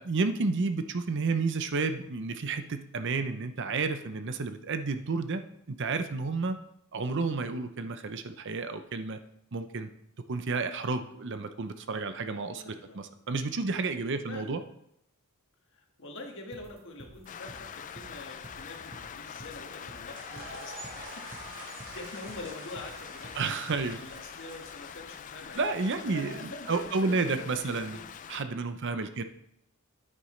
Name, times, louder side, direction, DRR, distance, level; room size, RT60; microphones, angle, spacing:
voice 1, 0.0-5.4 5.7-6.6 6.9-9.2 9.5-9.9 10.3-14.6 23.4-24.0 25.6-28.0 28.3-29.2, right 4 dB, 55° right, 9 dB, 0.6 m, -31 dB
voice 2, 12.6-13.0 14.3-14.5 15.7-20.8 21.9-23.6 23.9-28.1 28.8-29.2, left 2 dB, 55° left, 1 dB, 1.6 m, -45 dB
sound 1, 16.5-24.0, right 1 dB, 25° right, 1.1 m, -50 dB
Rain, 17.3-28.4, left 8 dB, 35° left, 0.3 m, -44 dB
sound 2, 19.9-25.9, right 2 dB, 85° right, 3.4 m, -48 dB
9.4 x 8.8 x 3.2 m, 0.76 s
head